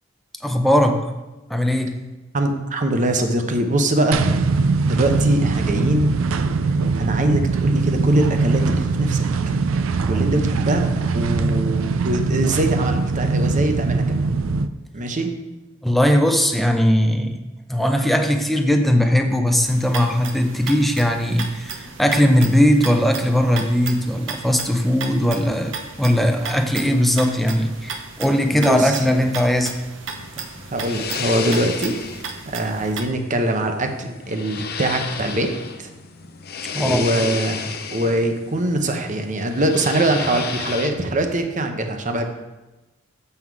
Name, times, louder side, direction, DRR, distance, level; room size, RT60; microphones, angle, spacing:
voice 1, 0.4-1.0 1.5-2.0 10.0-10.2 15.8-17.4 17.7-25.7 26.0-29.7 36.7-37.1, equal, ahead, 4 dB, 0.6 m, -19 dB
voice 2, 2.3-4.4 4.9-6.2 7.0-9.6 10.1-14.2 14.9-15.3 28.5-29.1 30.7-31.9 32.5-35.5 35.8-35.9 36.7-42.3, right 1 dB, 40° right, 6 dB, 0.8 m, -23 dB
sound 1, 4.1-14.7, right 4 dB, 85° right, 0.4 m, -21 dB
sound 2, 19.6-33.0, right 5 dB, 65° right, 0.8 m, -35 dB
sound 3, 30.0-40.9, left 6 dB, 50° left, 0.6 m, -33 dB
7.7 x 5.7 x 4.6 m, 1.1 s
head